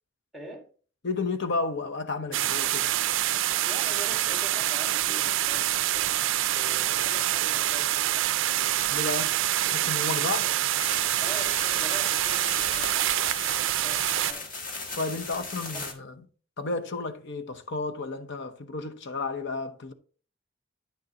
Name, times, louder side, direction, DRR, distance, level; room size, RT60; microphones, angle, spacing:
voice 1, 0.3-0.7 3.6-6.3 6.5-8.3 10.4-10.5 11.2-13.4 13.8-14.4, right 1 dB, ahead, 1.6 m, -44 dB
voice 2, 1.0-2.9 8.9-10.5 15.0-16.1 16.6-19.9, left 3 dB, 60° left, 0.8 m, -32 dB
sound 1, 2.3-14.3, right 13 dB, 65° right, 0.4 m, -26 dB
sound 2, 10.8-15.9, left 3 dB, 45° left, 1.6 m, -38 dB
9.5 x 6.6 x 2.9 m
head